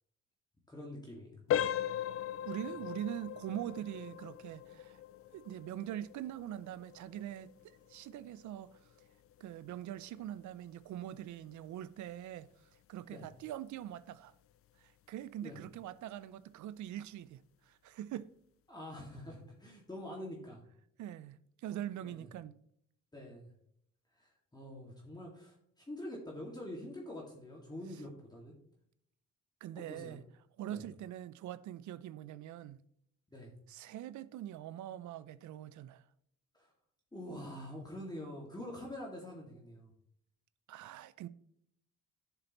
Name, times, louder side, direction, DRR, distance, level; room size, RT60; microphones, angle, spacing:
voice 1, 0.7-1.4 13.1-13.3 15.4-15.6 18.7-20.6 22.0-22.3 23.1-23.5 24.2-25.6 25.9-28.5 29.8-30.2 30.7-30.8 33.3-33.5 36.5-36.7 37.1-39.9, left 1 dB, 15° left, 2.0 m, -45 dB
sound 1, 1.5-12.2 12.5-12.7 13.3-13.4 13.9-14.1, left 10 dB, 50° left, 0.4 m, -40 dB
voice 2, 2.4-5.0 5.3-7.5 7.9-8.7 9.4-12.5 12.9-14.3 14.8-17.4 17.7-18.3 21.0-22.6 29.6-30.2 30.6-32.8 33.7-36.0 40.7-41.3, right 12 dB, 75° right, 0.5 m, -43 dB
11.0 x 6.8 x 3.0 m
cardioid pair, 90°, 30 cm